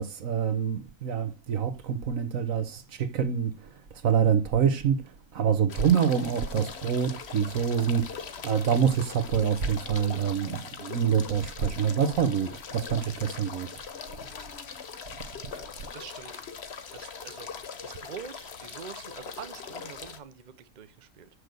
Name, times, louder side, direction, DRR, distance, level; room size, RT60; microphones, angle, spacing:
voice 1, 0.0-13.8 15.2-15.9, right 7 dB, 75° right, 1.5 m, -26 dB
sound 1, 5.7-20.2, left 6 dB, 55° left, 1.3 m, -41 dB
voice 2, 15.9-16.5 16.9-17.5 17.8-21.3, right 7 dB, 40° right, 0.8 m, -45 dB
6.7 x 6.5 x 7.7 m
omnidirectional pair, 1.4 m